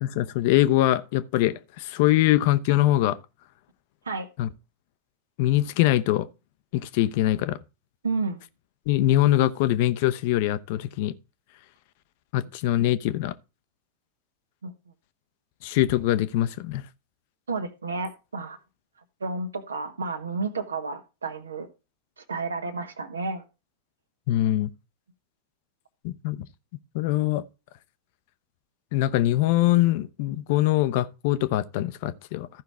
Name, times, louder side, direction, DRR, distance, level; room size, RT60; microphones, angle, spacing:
voice 1, 0.0-3.2 4.4-4.5 5.4-6.3 6.7-7.6 8.9-11.1 12.3-13.3 15.6-16.8 24.3-24.7 26.0-26.4 26.9-27.4 28.9-32.5, left 14 dB, 50° left, 0.7 m, -23 dB
voice 2, 8.0-8.4 12.4-12.5 14.6-14.7 17.5-18.6 19.2-21.7 22.3-23.4, right 3 dB, 70° right, 1.5 m, -31 dB
14.5 x 5.8 x 3.4 m
figure-of-eight pair, 90°, 0 cm